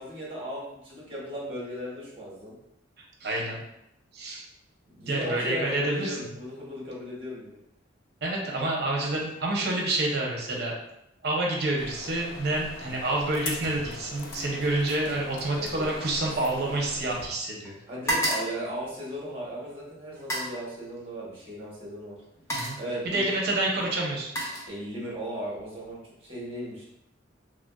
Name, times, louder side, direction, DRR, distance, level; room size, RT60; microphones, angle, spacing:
voice 1, 0.0-2.5 4.9-7.6 15.5-15.9 17.9-22.2 22.8-23.3 24.7-26.9, equal, 30° right, -5 dB, 1.0 m, -36 dB
voice 2, 3.2-3.6 4.1-4.4 5.1-6.3 8.2-10.7 11.2-17.7 22.5-22.8 23.0-24.3, right 2 dB, 60° right, -1 dB, 0.7 m, -28 dB
sound 1, 11.8-17.3, left 3 dB, 70° left, 0.4 m, -41 dB
sound 2, 13.6-14.0 14.2-17.4 17.6-19.5 20.1-20.6 21.7-21.8 22.2-22.9 23.8-25.2 25.6-25.9, right 1 dB, 15° left, 0.6 m, -34 dB
3.2 x 2.5 x 2.2 m, 0.82 s
head